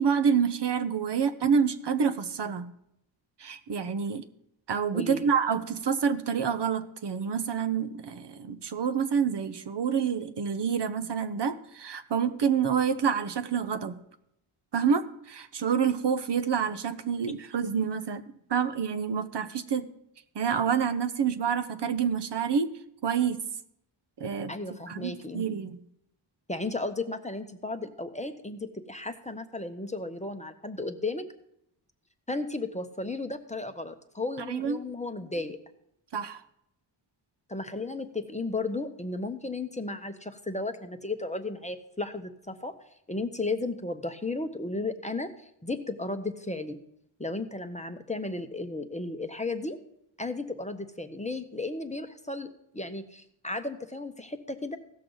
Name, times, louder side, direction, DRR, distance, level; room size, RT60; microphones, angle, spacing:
voice 1, 0.0-2.7 3.4-4.2 4.7-14.0 14.7-18.2 18.5-19.9 20.3-22.7 23.0-23.4 24.2-24.5 24.9-25.8 34.5-34.8 36.1-36.4, right 7 dB, 60° right, 10 dB, 0.7 m, -28 dB
voice 2, 4.9-5.3 24.5-25.4 26.5-31.3 32.3-35.6 37.5-42.7 43.1-46.8 47.2-49.8 50.2-54.8, left 2 dB, 15° left, 7 dB, 0.7 m, -34 dB
16.5 x 6.6 x 3.8 m, 0.77 s
wide cardioid pair, 115°, 47 cm